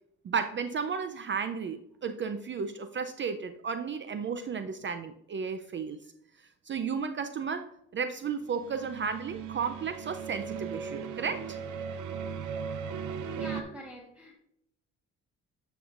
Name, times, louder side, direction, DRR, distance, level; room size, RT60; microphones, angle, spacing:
voice 1, 0.2-6.0 6.7-11.6, right 6 dB, 40° right, 9 dB, 0.5 m, -33 dB
sound 1, 8.5-13.6, right 7 dB, 80° right, 0.8 m, -37 dB
voice 2, 13.4-14.4, left 1 dB, 5° right, -2 dB, 1.3 m, -44 dB
9.5 x 5.5 x 2.5 m, 0.76 s
cardioid pair, 90°, 30 cm